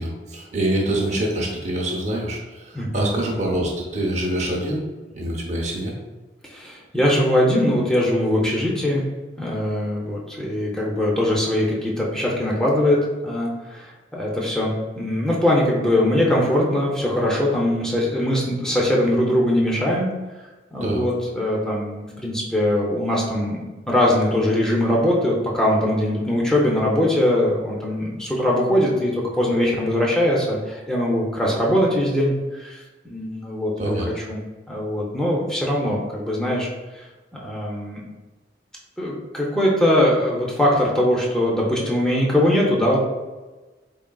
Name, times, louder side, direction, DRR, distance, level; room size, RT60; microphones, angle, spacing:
voice 1, 0.0-4.8 5.1-5.9 20.8-21.0 33.8-34.1, right 1 dB, 40° right, -1 dB, 0.7 m, -25 dB
voice 2, 2.7-3.1 6.5-9.0 9.4-20.1 20.7-33.7 34.1-34.4 34.7-36.7 36.9-37.0 37.4-38.0 39.0-43.0, left 1 dB, 5° left, -4 dB, 0.5 m, -21 dB
3.7 x 3.6 x 2.2 m, 1.2 s
head